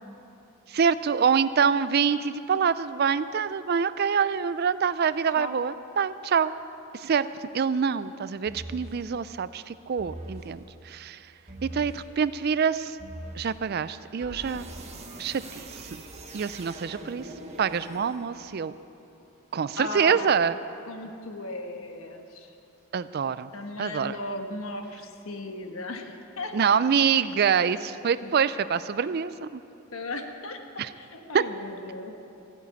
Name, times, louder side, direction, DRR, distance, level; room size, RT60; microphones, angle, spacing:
voice 1, 0.7-6.5 6.9-7.3 7.5-11.2 11.6-13.0 13.3-14.7 15.2-15.9 16.3-17.3 17.6-18.7 19.5-20.6 22.9-23.5 23.8-24.2 26.5-29.6 30.8-30.9 31.3-31.4, right 6 dB, 50° right, 15 dB, 0.4 m, -25 dB
sound 1, 8.5-9.0 10.0-10.5 11.5-12.0 13.0-13.5 14.2-18.6, right 1 dB, 30° right, 1.3 m, -42 dB
voice 2, 19.8-20.5 20.9-22.5 23.5-26.6 28.2-28.3 29.9-30.6 30.9-32.3, left 2 dB, 75° left, 5 dB, 1.3 m, -37 dB
15.0 x 9.2 x 8.4 m, 2.8 s
head